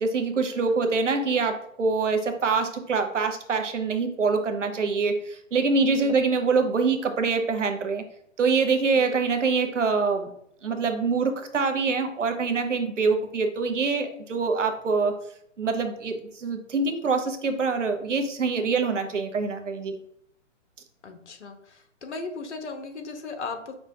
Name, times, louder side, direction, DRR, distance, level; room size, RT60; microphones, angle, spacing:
voice 1, 0.0-8.0 8.4-10.3 10.6-15.2 15.6-20.0, right 4 dB, 70° right, 6 dB, 0.7 m, -25 dB
voice 2, 8.9-9.2 21.0-23.7, left 4 dB, 60° left, 6 dB, 0.9 m, -37 dB
5.3 x 3.0 x 2.7 m, 0.70 s
figure-of-eight pair, 125°, 38 cm